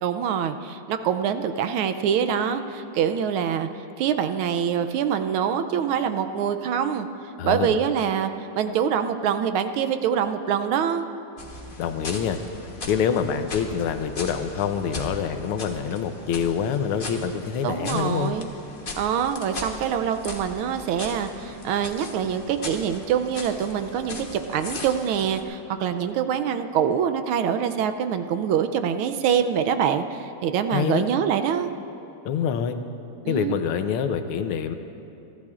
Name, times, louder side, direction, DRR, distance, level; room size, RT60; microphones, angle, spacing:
voice 1, 0.0-3.7 4.0-7.1 7.4-8.3 8.6-11.1 17.6-18.5 19.0-31.7 33.2-33.6, right 8 dB, 80° right, 8 dB, 1.4 m, -25 dB
voice 2, 7.4-7.8 11.8-12.4 12.9-18.3 30.7-31.1 32.2-32.8 33.3-34.8, left 7 dB, 85° left, 8 dB, 1.6 m, -26 dB
sound 1, 11.4-25.4, left 2 dB, 35° left, 0.8 m, -38 dB
28.5 x 12.0 x 2.4 m, 2.7 s
omnidirectional pair, 2.4 m